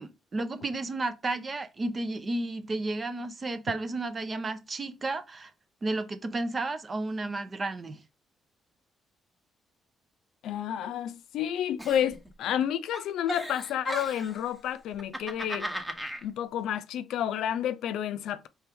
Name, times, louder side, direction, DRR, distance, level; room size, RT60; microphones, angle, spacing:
voice 1, 0.0-5.5 5.8-8.0, right 2 dB, 35° right, 0.8 m, -32 dB
voice 2, 10.4-15.7 16.2-18.5, left 10 dB, 80° left, 0.5 m, -30 dB
Giggle, 11.8-12.6 12.9-14.4 14.9-16.2, right 1 dB, 10° right, 1.1 m, -36 dB
4.4 x 3.5 x 3.5 m
cardioid pair, 90°, 0 cm